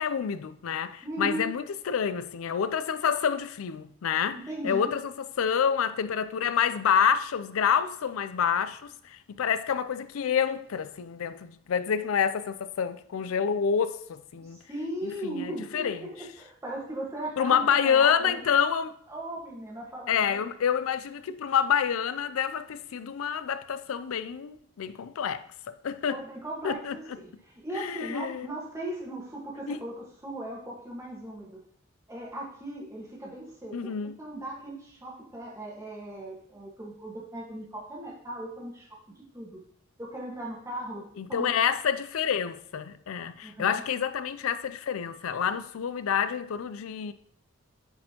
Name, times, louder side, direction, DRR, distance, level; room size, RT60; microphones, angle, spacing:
voice 1, 0.0-4.4 4.6-14.6 15.0-16.0 17.4-18.9 20.1-25.5 25.8-26.2 26.6-27.0 27.7-28.5 29.7-29.8 33.7-34.1 41.2-47.1, left 7 dB, 80° left, 0.4 m, -28 dB
voice 2, 1.0-1.5 4.3-4.9 14.3-18.4 19.1-20.4 26.1-31.6 32.1-39.0 39.3-39.6 40.0-41.8 43.4-43.8, right 1 dB, 15° right, 1.4 m, -38 dB
9.5 x 4.3 x 2.9 m
head